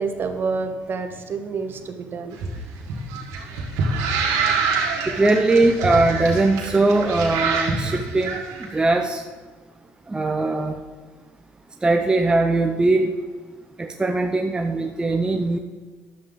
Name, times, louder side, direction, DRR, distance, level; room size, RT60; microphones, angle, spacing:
voice 1, 0.0-2.4, right 4 dB, 40° right, 7 dB, 1.1 m, -28 dB
sound 1, 2.3-8.7, right 4 dB, 80° right, 1.8 m, -26 dB
voice 2, 5.1-8.4 8.7-9.2 10.1-10.8 11.8-13.1 13.8-15.6, right 2 dB, 15° right, 4 dB, 0.6 m, -20 dB
11.0 x 7.3 x 3.8 m, 1.4 s
cardioid pair, 100°, 5 cm